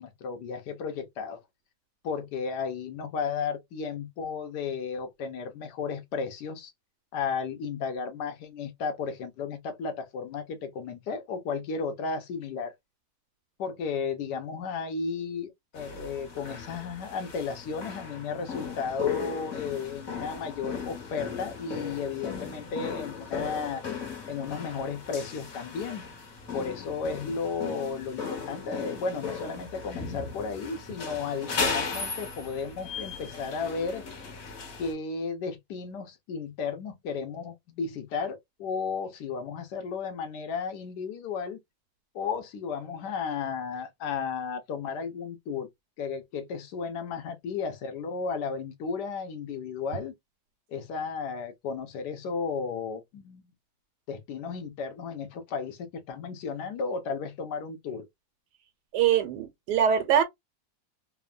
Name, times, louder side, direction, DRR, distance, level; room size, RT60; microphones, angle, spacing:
voice 1, 0.0-1.4 2.0-6.7 7.1-12.7 13.6-23.8 24.3-26.1 26.5-34.0 34.8-41.6 42.1-45.7 46.0-50.1 50.7-53.5 54.1-58.1, left 5 dB, 85° left, 1.3 m, -34 dB
sound 1, 15.7-34.9, left 5 dB, 60° left, 1.6 m, -36 dB
voice 2, 58.9-60.2, right 9 dB, 85° right, 1.2 m, -23 dB
3.4 x 2.1 x 2.3 m
omnidirectional pair, 1.7 m